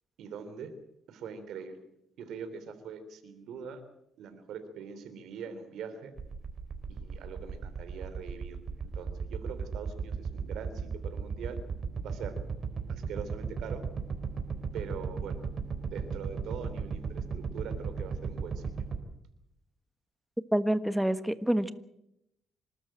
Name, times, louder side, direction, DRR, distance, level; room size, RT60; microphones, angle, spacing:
voice 1, 0.2-0.7 1.1-1.8 2.2-3.8 4.2-6.1 6.9-11.6 12.0-12.3 12.9-13.8 14.7-15.4 15.9-18.6, right 6 dB, 80° right, 10 dB, 3.4 m, -42 dB
sound 1, 6.2-19.0, right 5 dB, 45° right, 3.9 m, -35 dB
voice 2, 20.5-21.7, right 1 dB, 5° right, 12 dB, 1.4 m, -27 dB
26.5 x 13.0 x 8.9 m, 0.81 s
cardioid pair, 90°, 0 cm